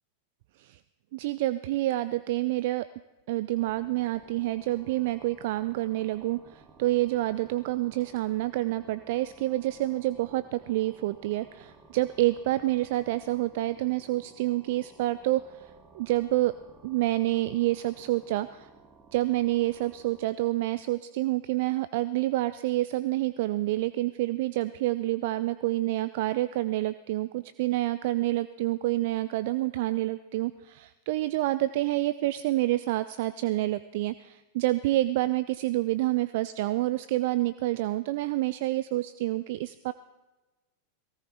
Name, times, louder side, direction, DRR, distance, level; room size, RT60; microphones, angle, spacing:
voice 1, 1.1-2.9 3.3-16.5 16.8-18.7 19.1-39.9, right 17 dB, 50° right, 15 dB, 0.4 m, -28 dB
sound 1, 3.5-20.3, right 3 dB, 20° right, 2.2 m, -56 dB
19.0 x 17.0 x 4.2 m, 1.1 s
figure-of-eight pair, 90°, 0 cm